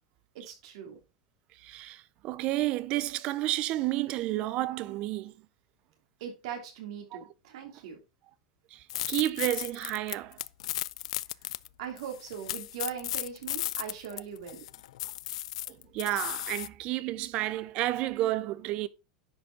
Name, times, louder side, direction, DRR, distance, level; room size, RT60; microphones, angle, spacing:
voice 1, 0.3-1.0 6.2-8.0 11.8-14.6, right 8 dB, 65° right, 3.2 m, -40 dB
voice 2, 1.6-5.3 7.1-7.2 8.7-10.4 15.7-18.9, right 15 dB, 35° right, 0.5 m, -31 dB
sound 1, 8.9-11.7 12.0-16.7, left 15 dB, 80° left, 0.3 m, -35 dB
10.0 x 5.3 x 3.7 m
supercardioid pair, 175°, 3 cm